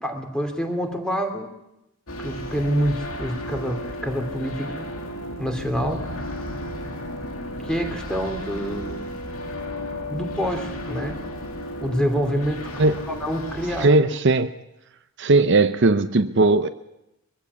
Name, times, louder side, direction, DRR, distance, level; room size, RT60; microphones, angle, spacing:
voice 1, 0.0-1.5 2.2-4.9 5.4-6.0 7.6-9.1 10.1-11.2 11.8-12.7 13.2-13.9, equal, 5° left, 2.8 m, -26 dB
sound 1, 2.1-13.9, left 1 dB, 85° left, 2.6 m, -33 dB
voice 2, 13.8-14.5 15.2-16.7, right 3 dB, 55° right, 0.7 m, -18 dB
23.0 x 15.5 x 8.3 m
head